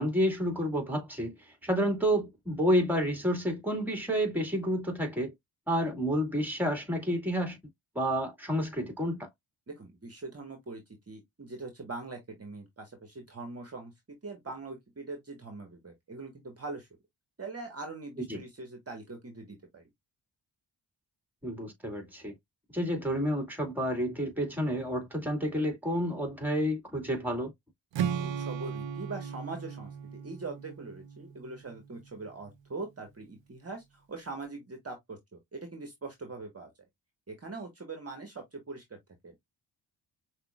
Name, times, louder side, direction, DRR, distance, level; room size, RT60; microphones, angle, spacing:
voice 1, 0.0-5.3 5.7-7.6 8.0-9.3 18.2-18.4 21.4-22.3 22.7-27.5, equal, 5° right, 2.1 m, -30 dB
voice 2, 9.7-13.9 14.2-16.9 17.4-19.8 28.2-36.7 37.3-38.8 39.2-39.3, right 3 dB, 35° right, 1.4 m, -42 dB
Strum, 27.9-32.1, right 8 dB, 75° right, 0.7 m, -36 dB
6.0 x 2.6 x 2.3 m
cardioid pair, 60°, 45 cm